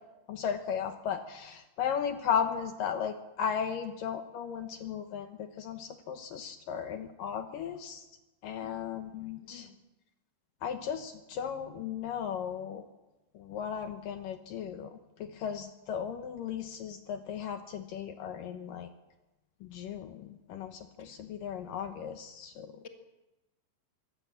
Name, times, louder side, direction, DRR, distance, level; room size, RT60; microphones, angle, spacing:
voice 1, 0.3-8.0 8.4-9.7 10.6-12.8 13.3-18.9 19.6-22.7, left 7 dB, 70° left, 8 dB, 2.2 m, -36 dB
voice 2, 9.4-9.7, left 8 dB, 35° left, 4 dB, 1.0 m, -52 dB
23.0 x 17.5 x 7.4 m, 1.0 s
omnidirectional pair, 4.9 m